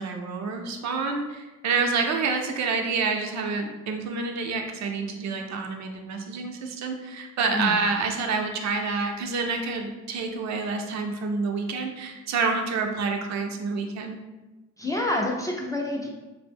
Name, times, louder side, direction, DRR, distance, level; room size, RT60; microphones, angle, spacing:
voice 1, 0.0-14.2, right 4 dB, 65° right, 4 dB, 0.5 m, -28 dB
voice 2, 14.8-16.1, left 1 dB, 10° left, -1 dB, 0.3 m, -27 dB
2.6 x 2.0 x 3.4 m, 1.1 s
cardioid pair, 90°, 30 cm